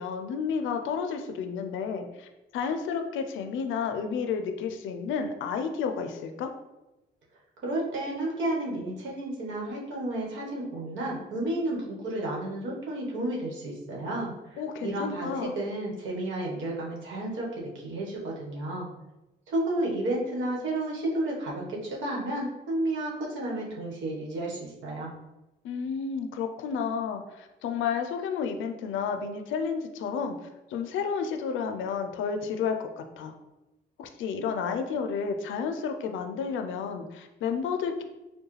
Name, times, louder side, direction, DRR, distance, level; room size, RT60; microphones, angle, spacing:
voice 1, 0.0-6.5 14.6-15.6 25.6-30.4 30.7-33.3 34.0-38.0, left 6 dB, 80° left, 6 dB, 0.5 m, -31 dB
voice 2, 7.6-18.9 19.5-25.1, right 1 dB, 75° right, -3 dB, 1.2 m, -32 dB
4.6 x 2.2 x 3.2 m, 1.0 s
cardioid pair, 90°, 20 cm